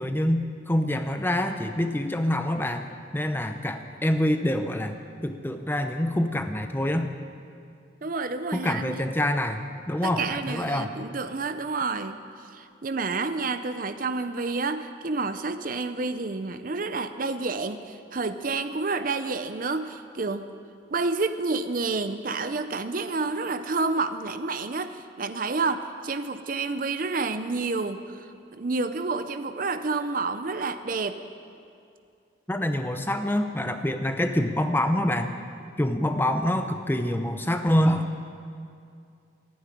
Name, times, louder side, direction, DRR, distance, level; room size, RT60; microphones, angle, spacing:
voice 1, 0.0-2.9 3.1-5.0 5.2-7.1 8.5-9.6 9.9-10.9 32.5-35.3 35.8-38.1, left 1 dB, 10° left, 7 dB, 0.6 m, -26 dB
voice 2, 8.0-9.0 10.0-12.2 12.5-20.5 20.9-31.2, right 3 dB, 45° right, 10 dB, 0.6 m, -29 dB
14.5 x 9.5 x 9.8 m, 2.4 s
head